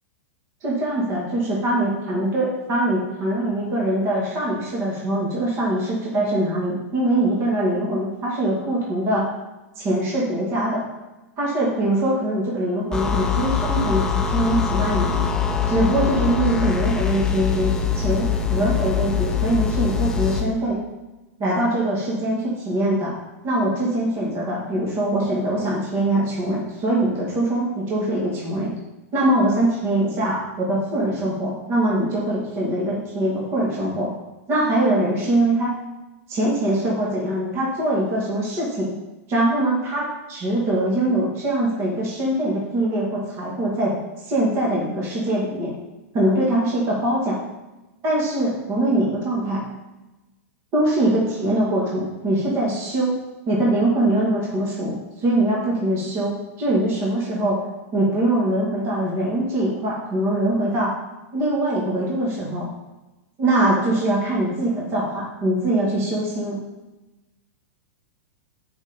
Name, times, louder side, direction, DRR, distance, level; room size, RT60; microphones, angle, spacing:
voice 1, 0.6-9.3 9.8-10.8 11.4-15.3 15.7-20.8 21.4-23.1 23.4-28.7 29.1-34.1 34.5-35.7 36.3-38.9 39.3-43.9 44.2-45.7 46.1-47.4 48.0-49.6 50.7-53.2 53.5-57.6 57.9-60.9 61.3-62.7 63.4-66.6, right 1 dB, 30° right, -4 dB, 1.9 m, -22 dB
sound 1, 12.9-20.5, left 7 dB, 10° left, 0.6 m, -23 dB
6.5 x 5.3 x 5.1 m, 1.0 s
supercardioid pair, 155°, 8 cm